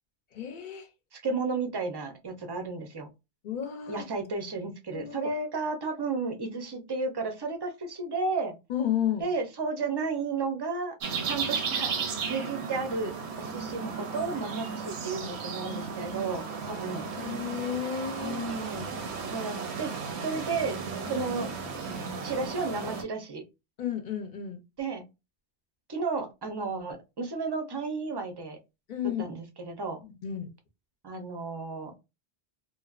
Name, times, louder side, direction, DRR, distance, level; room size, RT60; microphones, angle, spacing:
voice 1, 0.3-0.9 3.4-4.0 4.9-5.3 8.7-9.3 17.2-18.4 21.0-21.3 23.8-24.6 28.9-29.2 30.2-30.5, left 9 dB, 60° left, 0.6 m, -32 dB
voice 2, 1.1-3.1 3.9-8.5 9.2-10.9 11.2-17.1 18.2-18.9 19.3-20.8 21.1-21.5 22.2-23.4 24.8-25.0 25.9-28.6 29.0-30.0 31.0-31.9, right 4 dB, 40° right, 0.4 m, -33 dB
sound 1, 11.0-23.0, right 5 dB, 85° right, 0.9 m, -35 dB
2.7 x 2.0 x 2.3 m
omnidirectional pair, 1.1 m